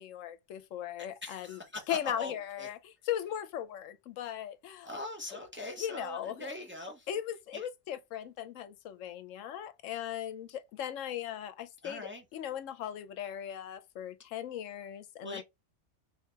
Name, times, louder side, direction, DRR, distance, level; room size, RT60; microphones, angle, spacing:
voice 1, 0.0-1.6 1.9-4.9 5.3-5.4 5.8-6.5 7.1-15.4, left 10 dB, 85° left, 1.0 m, -38 dB
voice 2, 1.2-2.7 4.8-7.1 7.5-7.7 11.8-12.2 15.2-15.4, left 2 dB, 10° right, 0.6 m, -42 dB
3.8 x 2.8 x 3.3 m
omnidirectional pair, 1.3 m